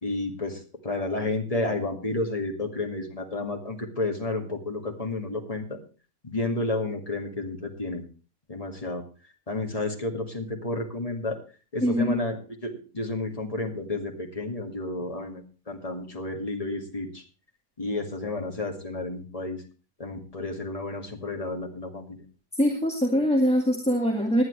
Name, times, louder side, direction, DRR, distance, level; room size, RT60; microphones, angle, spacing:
voice 1, 0.0-5.8 6.2-8.0 8.5-9.0 9.5-11.4 11.7-17.2 17.8-19.6 20.0-22.2, left 2 dB, 25° left, 2 dB, 2.2 m, -31 dB
voice 2, 11.8-12.2 22.6-24.4, equal, 5° left, 1 dB, 1.9 m, -23 dB
19.5 x 10.5 x 3.3 m, 0.34 s
omnidirectional pair, 1.5 m